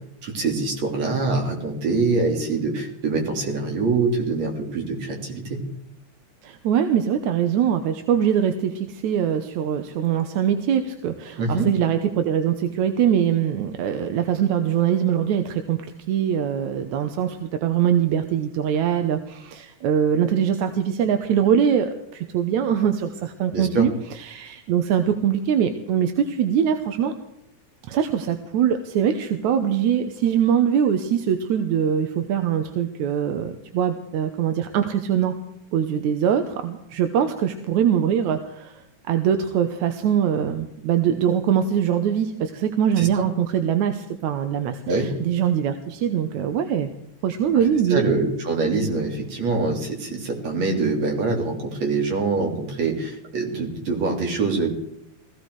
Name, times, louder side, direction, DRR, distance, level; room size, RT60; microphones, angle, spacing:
voice 1, 0.2-5.6 11.4-11.7 23.5-23.9 43.0-43.3 44.9-45.1 47.5-54.7, right 3 dB, 65° right, 1 dB, 4.3 m, -24 dB
voice 2, 6.4-15.8 16.1-27.1 27.9-35.4 35.7-46.9 47.2-48.1, right 8 dB, 85° right, 7 dB, 2.4 m, -22 dB
18.0 x 15.5 x 4.8 m, 0.81 s
omnidirectional pair, 3.3 m